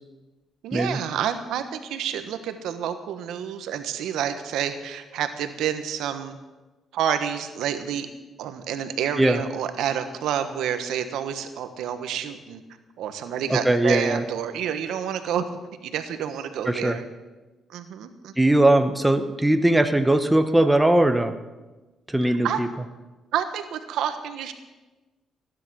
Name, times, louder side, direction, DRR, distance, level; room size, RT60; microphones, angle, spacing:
voice 1, 0.6-6.4 6.9-8.1 8.4-12.6 13.0-15.5 15.8-17.0 17.7-18.3 22.2-22.6 23.3-24.5, right 9 dB, 85° right, 9 dB, 1.2 m, -29 dB
voice 2, 13.5-14.2 16.7-17.0 18.4-21.3 22.1-22.7, right 1 dB, 10° right, 8 dB, 1.1 m, -20 dB
16.5 x 10.0 x 6.3 m, 1.2 s
cardioid pair, 90°, 0 cm